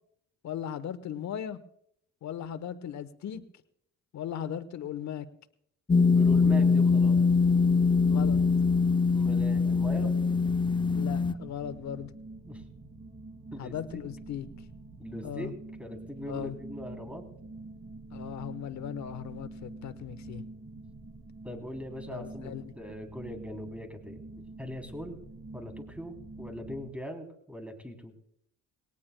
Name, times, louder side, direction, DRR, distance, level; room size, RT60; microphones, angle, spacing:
voice 1, 0.4-1.6 2.2-3.4 4.1-5.3 8.0-8.4 10.9-12.1 13.6-14.5 15.2-15.5 16.3-16.6 18.1-20.4 22.1-22.7, left 9 dB, 65° left, 13 dB, 1.1 m, -37 dB
sound 1, 5.9-11.3, left 4 dB, 15° left, 0.5 m, -23 dB
voice 2, 6.1-7.2 9.1-10.1 12.4-12.6 13.5-14.0 15.0-15.5 15.8-17.2 21.4-24.2 24.6-25.2 25.5-28.1, equal, 5° right, 4 dB, 3.3 m, -41 dB
sound 2, 9.1-26.9, right 2 dB, 30° right, 2.9 m, -46 dB
20.0 x 18.0 x 2.2 m, 0.70 s
cardioid pair, 90°, 30 cm